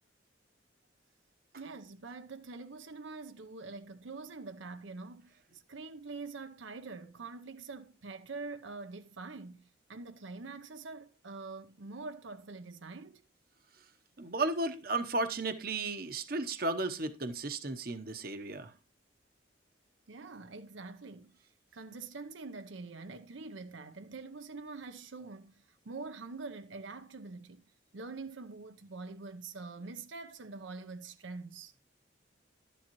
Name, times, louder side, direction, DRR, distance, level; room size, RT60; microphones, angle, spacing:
voice 1, 1.5-13.2 20.1-21.4 21.7-27.6 27.9-31.7, right 3 dB, 80° right, 0.8 m, -45 dB
voice 2, 14.2-18.7, right 2 dB, 50° right, 0.9 m, -34 dB
12.0 x 10.0 x 3.0 m
head